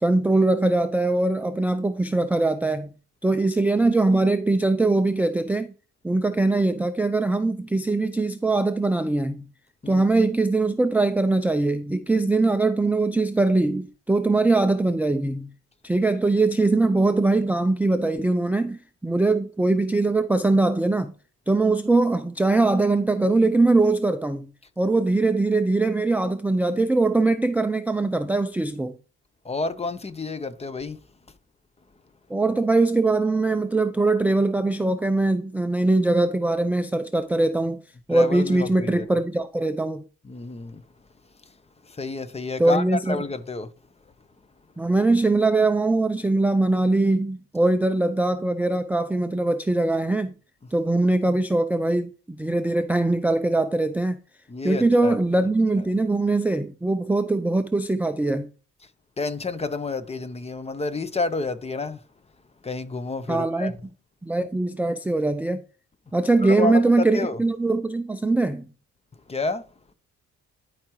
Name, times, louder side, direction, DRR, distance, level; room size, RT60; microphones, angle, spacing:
voice 1, 0.0-2.9 3.2-5.7 6.0-9.4 9.9-15.5 15.8-21.1 21.5-24.5 24.8-28.9 32.3-37.8 38.1-40.0 42.6-43.2 44.8-50.3 50.7-54.2 54.6-58.5 63.3-63.7 64.2-65.6 66.1-68.7, right 2 dB, 5° right, 0.4 m, -22 dB
voice 2, 29.4-31.0 38.1-39.1 40.2-40.8 41.9-43.7 54.5-55.2 59.2-62.0 62.6-63.7 66.4-67.4 69.3-69.6, left 3 dB, 20° left, 0.7 m, -29 dB
12.0 x 4.8 x 3.1 m
cardioid pair, 90°, 30 cm